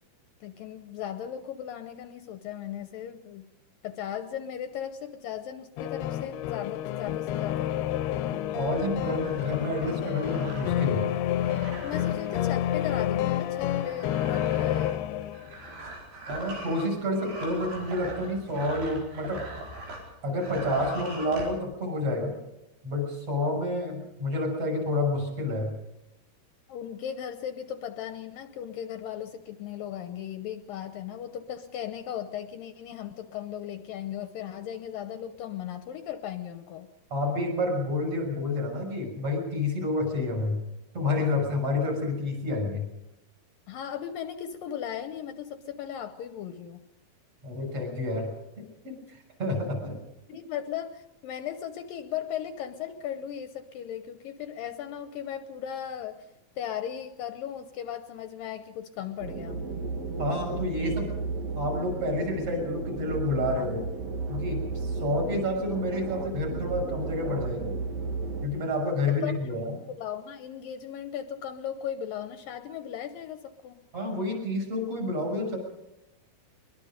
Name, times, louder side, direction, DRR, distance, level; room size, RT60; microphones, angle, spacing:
voice 1, 0.4-3.5 3.8-7.7 11.8-15.0 26.7-36.9 43.7-46.8 50.3-56.3 56.6-59.6 69.2-73.8, left 9 dB, 75° left, 8 dB, 2.4 m, -37 dB
sound 1, 5.8-15.6, left 12 dB, 90° left, 2.9 m, -29 dB
voice 2, 8.3-11.0 16.3-19.4 20.2-22.3 22.8-25.7 37.1-40.6 40.9-42.9 47.4-48.3 48.6-50.0 60.2-61.1 61.5-63.9 64.3-67.7 68.4-69.6 73.9-75.6, left 2 dB, 35° right, 0 dB, 7.6 m, -29 dB
sound 2, 8.6-20.1 20.3-21.5, right 1 dB, 90° right, 6.7 m, -42 dB
sound 3, 59.2-68.5, right 4 dB, 55° right, 2.4 m, -34 dB
23.0 x 22.5 x 5.2 m, 0.90 s
omnidirectional pair, 4.5 m